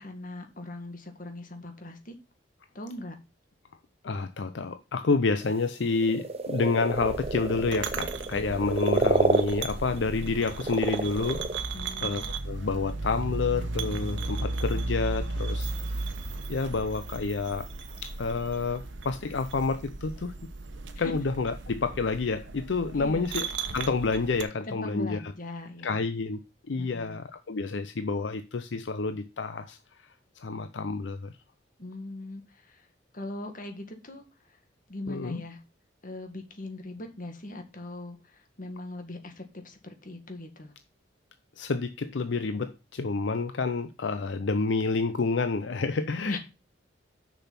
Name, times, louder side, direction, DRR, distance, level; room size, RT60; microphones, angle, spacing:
voice 1, 0.0-2.2 2.7-3.2 11.7-12.3 21.0-21.1 22.9-23.3 24.7-26.1 26.8-27.2 31.8-32.9 33.1-34.2 34.5-34.6 34.9-35.6 36.0-40.7 46.3-46.4, left 2 dB, 45° left, 1.8 m, -40 dB
voice 2, 4.0-11.4 12.0-15.7 16.5-17.7 18.0-20.3 21.0-23.5 23.7-25.3 25.8-26.4 26.7-29.8 30.4-31.3 35.1-35.4 41.6-46.4, left 4 dB, 75° left, 0.6 m, -29 dB
sound 1, 5.4-5.6 5.9-10.3 10.5-11.6, right 2 dB, 35° right, 0.7 m, -29 dB
sound 2, 6.9-24.4, right 3 dB, 90° right, 1.1 m, -35 dB
6.8 x 6.2 x 5.8 m
head